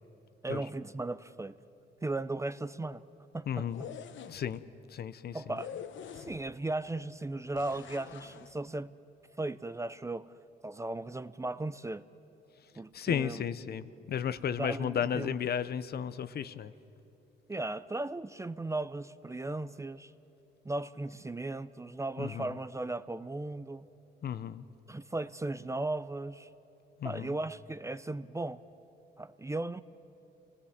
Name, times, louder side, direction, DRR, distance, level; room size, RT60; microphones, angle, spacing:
voice 1, 0.4-1.6 2.0-3.0 3.3-3.7 5.3-5.7 6.2-8.9 9.4-10.3 10.6-12.0 12.8-13.4 14.6-15.3 17.5-20.1 20.6-23.9 24.9-26.5 27.0-28.6 29.2-29.8, right 2 dB, 15° right, 15 dB, 0.5 m, -36 dB
voice 2, 3.5-3.8 4.3-4.6 4.9-5.4 12.9-16.7 22.2-22.5 24.2-24.6 27.0-27.3, left 8 dB, 55° left, 15 dB, 0.7 m, -34 dB
sound 1, 3.6-4.6 5.6-6.6 7.5-8.5, left 8 dB, 70° left, 1.0 m, -45 dB
27.5 x 18.0 x 7.3 m, 2.9 s
cardioid pair, 90°, 20 cm